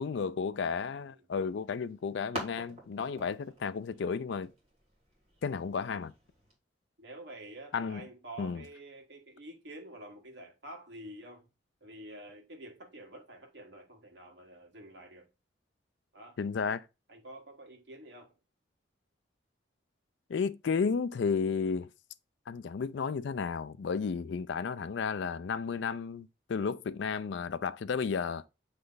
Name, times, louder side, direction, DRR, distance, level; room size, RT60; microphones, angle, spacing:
voice 1, 0.0-4.5 5.4-6.1 7.7-8.1 8.4-8.6 16.4-16.9 20.3-21.9 22.5-28.4, left 5 dB, 65° left, 0.4 m, -33 dB
sound 1, 1.4-6.5, right 1 dB, 30° right, 2.5 m, -47 dB
voice 2, 7.0-11.5 11.8-15.3 16.1-16.4 16.6-16.8 17.1-18.3 24.1-24.3, right 1 dB, 65° right, 1.6 m, -48 dB
7.8 x 3.2 x 3.9 m
head